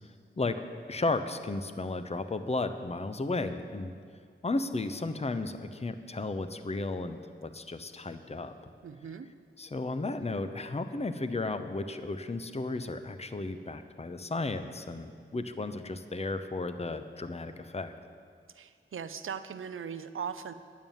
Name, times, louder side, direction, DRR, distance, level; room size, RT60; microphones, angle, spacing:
voice 1, 0.9-3.9 4.4-8.5 9.6-17.9, left 2 dB, 30° left, 10 dB, 0.7 m, -34 dB
voice 2, 8.8-9.3 18.5-20.5, right 7 dB, 85° right, 11 dB, 0.6 m, -39 dB
10.5 x 9.3 x 7.2 m, 2.1 s
cardioid pair, 50°, 20 cm